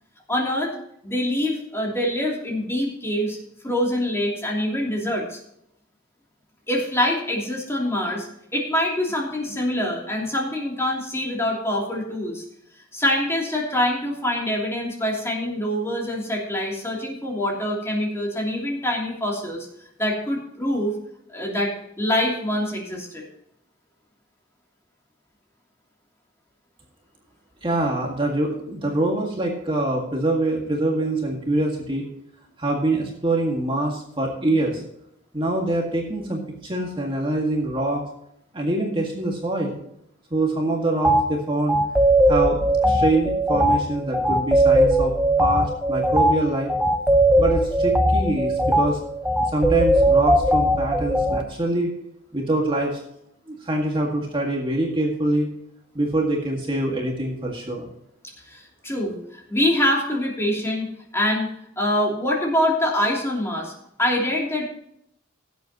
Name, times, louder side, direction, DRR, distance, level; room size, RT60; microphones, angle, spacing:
voice 1, 0.3-0.7 1.0-3.4 3.6-5.4 6.7-8.3 8.5-12.4 12.9-19.7 20.0-20.9 21.3-23.2 58.5-63.7 64.0-64.6, left 1 dB, 15° left, -2 dB, 3.0 m, -25 dB
voice 2, 27.6-32.1 32.6-34.8 35.3-38.0 38.5-39.8 40.3-41.8 42.3-45.1 45.4-46.7 47.4-49.0 49.5-51.9 52.3-52.9 53.5-55.5 56.0-57.9, right 1 dB, 25° right, 0 dB, 1.9 m, -24 dB
sound 1, 41.0-41.2 41.7-51.4, right 1 dB, 5° right, 0.8 m, -19 dB
17.5 x 8.2 x 3.0 m, 0.76 s
head